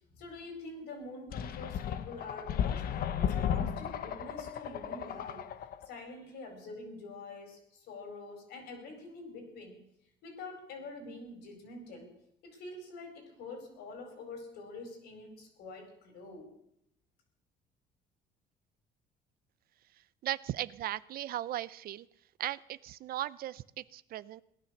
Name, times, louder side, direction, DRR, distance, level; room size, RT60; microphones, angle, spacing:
voice 1, 0.1-2.9 3.2-5.4 5.8-9.8 10.2-12.1 12.4-16.5, left 3 dB, 80° left, 4 dB, 4.8 m, -46 dB
sound 1, 1.3-5.9, left 9 dB, 60° left, 0.9 m, -34 dB
voice 2, 20.2-22.1 22.4-24.4, right 13 dB, 60° right, 18 dB, 0.5 m, -37 dB
18.0 x 11.0 x 6.5 m, 0.77 s
cardioid pair, 110°, 17 cm